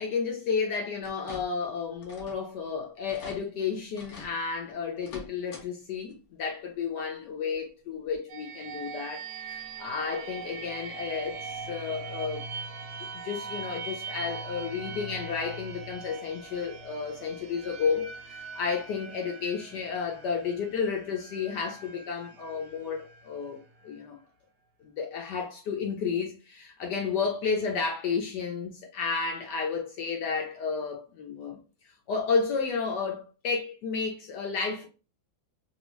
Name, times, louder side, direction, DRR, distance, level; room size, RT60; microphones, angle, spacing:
voice 1, 0.0-12.4 13.2-24.2 24.8-31.6 32.1-34.9, left 5 dB, 70° left, 1.0 m, -32 dB
sound 1, 1.0-1.7 2.0-2.5 2.8-2.9 3.1-3.4 4.0-4.3 5.0-5.7 6.0-6.1 7.5-7.6 8.1-8.2, left 3 dB, 90° left, 0.6 m, -45 dB
sound 2, 8.3-23.9, right 5 dB, 75° right, 0.9 m, -41 dB
3.0 x 2.7 x 3.0 m
omnidirectional pair, 2.3 m